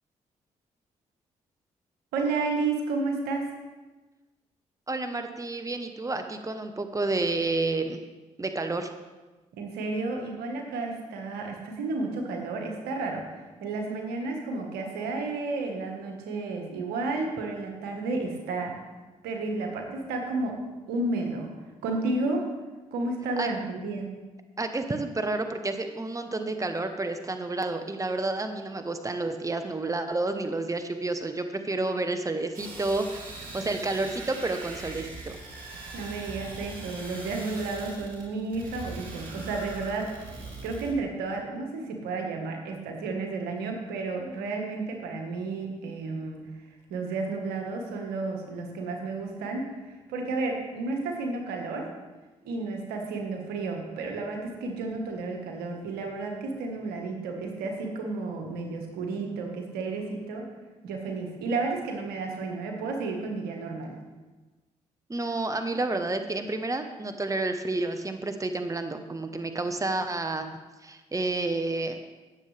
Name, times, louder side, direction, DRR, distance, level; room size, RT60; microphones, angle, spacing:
voice 1, 2.1-3.5 9.5-13.2 13.6-18.9 19.2-20.6 20.9-21.5 21.8-22.5 22.9-24.1 35.9-40.3 40.6-46.4 46.9-51.9 52.4-60.5 60.8-63.9, right 3 dB, 85° right, 2 dB, 1.5 m, -32 dB
voice 2, 4.9-8.0 8.4-8.9 23.4-23.5 24.6-35.4 65.1-70.5 70.8-72.2, right 2 dB, 20° right, 7 dB, 1.1 m, -30 dB
sound 1, 32.5-40.9, right 2 dB, 65° right, 3.3 m, -41 dB
17.0 x 7.4 x 3.4 m, 1.2 s
hypercardioid pair, 45°, 16 cm